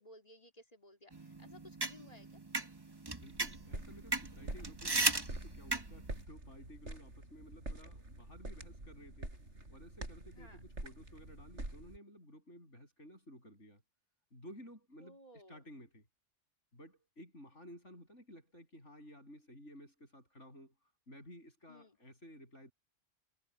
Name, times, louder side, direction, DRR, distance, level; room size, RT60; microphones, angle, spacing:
voice 1, 0.0-2.3 10.4-10.6 15.0-15.6 21.7-22.0, left 1 dB, 30° left, 3.0 m, -57 dB
sound 1, 1.1-6.2, right 2 dB, 20° right, 1.2 m, -37 dB
voice 2, 3.1-9.3 9.7-13.8 14.3-16.1 16.7-20.7 21.1-22.7, equal, 70° left, 7.7 m, -55 dB
sound 2, 3.3-12.0, right 2 dB, 65° right, 6.0 m, -47 dB
omnidirectional pair, 1.3 m